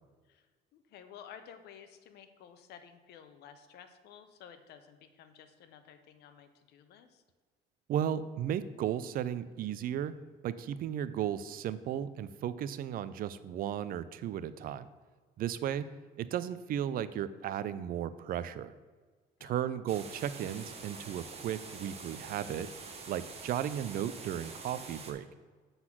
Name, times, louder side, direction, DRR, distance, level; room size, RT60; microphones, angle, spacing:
voice 1, 0.7-7.2 19.4-19.6, left 8 dB, 75° left, 9 dB, 0.7 m, -53 dB
voice 2, 7.9-10.1 10.4-14.9 15.4-15.9 16.2-18.7 19.4-22.7 23.1-25.3, right 10 dB, 60° right, 14 dB, 0.5 m, -35 dB
sound 1, 19.9-25.1, right 4 dB, 35° right, 1.1 m, -46 dB
7.8 x 4.0 x 5.9 m, 1.4 s
cardioid pair, 110°, 17 cm